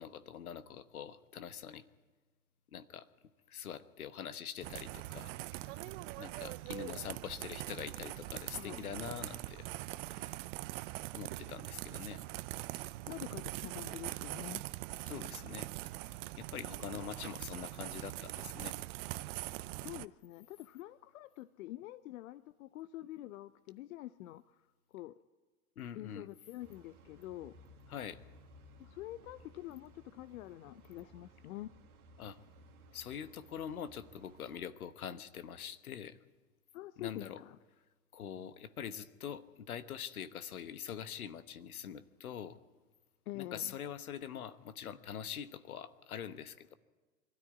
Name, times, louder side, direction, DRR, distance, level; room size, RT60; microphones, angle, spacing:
voice 1, 0.0-1.8 2.7-3.1 3.5-5.3 6.2-9.7 10.1-10.4 11.1-12.2 15.1-15.7 16.4-18.8 25.8-26.3 27.9-28.2 32.2-32.4 32.9-36.2 37.0-37.4 38.1-42.6 43.3-46.7, left 8 dB, 85° left, 12 dB, 1.2 m, -44 dB
sound 1, 4.6-20.1, right 18 dB, 60° right, 0.7 m, -43 dB
voice 2, 8.3-8.9 13.1-14.6 19.8-24.6 24.9-25.1 25.9-27.5 28.8-31.7 36.7-37.6 43.3-43.8, left 15 dB, 70° left, 14 dB, 0.7 m, -46 dB
sound 2, 26.6-34.6, right 1 dB, 90° right, 1.7 m, -59 dB
23.0 x 13.0 x 9.6 m, 1.3 s
hypercardioid pair, 95°, 42 cm